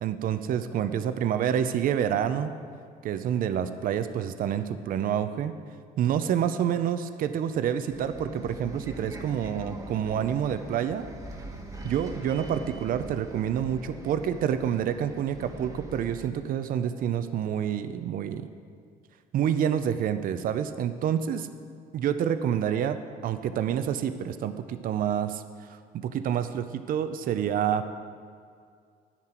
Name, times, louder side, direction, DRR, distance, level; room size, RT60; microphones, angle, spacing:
voice 1, 0.0-2.5 3.0-5.5 6.0-11.0 11.8-18.4 19.3-21.5 21.9-25.4 25.7-27.9, right 9 dB, 55° right, 10 dB, 0.6 m, -28 dB
Bus, 7.9-16.3, right 1 dB, 20° right, 1.3 m, -42 dB
11.0 x 9.9 x 4.4 m, 2.2 s
cardioid pair, 110°, 17 cm